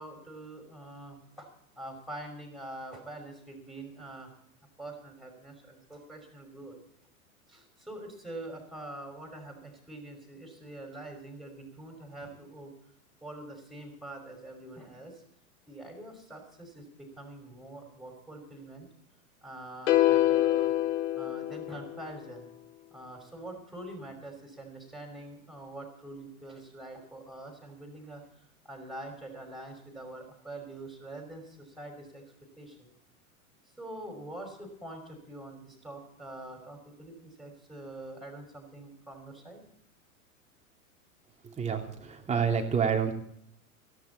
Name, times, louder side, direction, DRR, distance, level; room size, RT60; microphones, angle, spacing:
voice 1, 0.0-1.5 1.8-4.4 4.8-6.8 7.5-12.7 13.2-15.2 15.7-18.9 19.4-20.7 21.1-22.5 22.9-32.2 32.6-32.9 33.8-39.6, right 1 dB, ahead, 2 dB, 5.9 m, -45 dB
sound 1, 19.9-22.2, left 15 dB, 55° left, 1.6 m, -26 dB
voice 2, 41.6-43.1, right 6 dB, 15° right, 2 dB, 2.9 m, -28 dB
18.0 x 15.0 x 4.2 m, 0.70 s
figure-of-eight pair, 100°, 44 cm